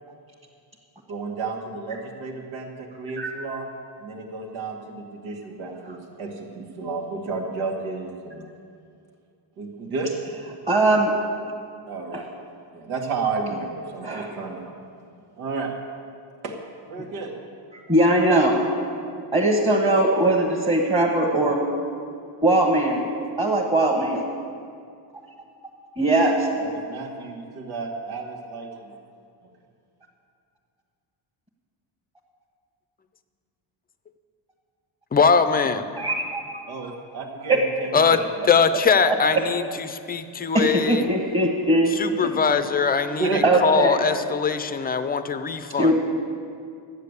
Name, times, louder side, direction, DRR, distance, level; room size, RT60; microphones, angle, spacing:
voice 1, 1.1-3.7 4.0-8.4 9.6-10.1 11.9-12.3 12.7-14.8 15.4-15.7 16.4-16.5 16.9-17.3 18.2-18.6 21.3-21.5 26.6-28.9 29.4-29.5 36.7-38.2 38.6-38.7 42.2-42.3 43.2-43.4, right 4 dB, 90° right, 1 dB, 2.1 m, -32 dB
voice 2, 10.7-11.1 14.0-14.3 17.7-18.5 19.3-21.6 22.4-23.0 23.4-24.2 26.0-26.5 36.0-36.4 37.5-37.6 39.0-39.2 40.5-41.9 43.4-44.0 45.8-45.9, right 1 dB, 15° right, -4 dB, 1.3 m, -20 dB
voice 3, 35.1-35.8 37.9-38.2 38.5-41.0 42.0-45.9, left 5 dB, 20° left, 11 dB, 0.5 m, -21 dB
12.0 x 9.2 x 8.1 m, 2.4 s
cardioid pair, 145°, 45 cm